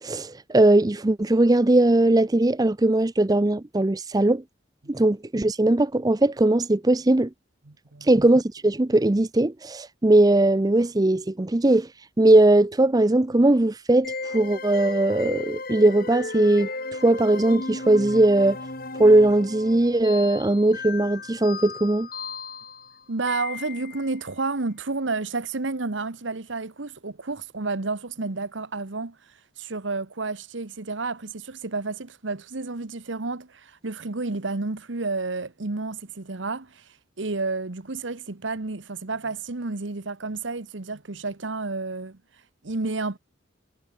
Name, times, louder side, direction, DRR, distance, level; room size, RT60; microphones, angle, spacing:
voice 1, 0.0-4.4 4.9-7.3 8.0-11.9 12.2-16.7 17.0-18.6 19.0-22.1, right 2 dB, 20° right, 0.5 m, -19 dB
voice 2, 7.7-8.1 23.1-29.2 29.6-36.8 37.2-42.2 42.6-43.2, right 3 dB, 75° right, 1.3 m, -31 dB
sound 1, 14.0-24.2, left 3 dB, 50° left, 5.6 m, -35 dB
head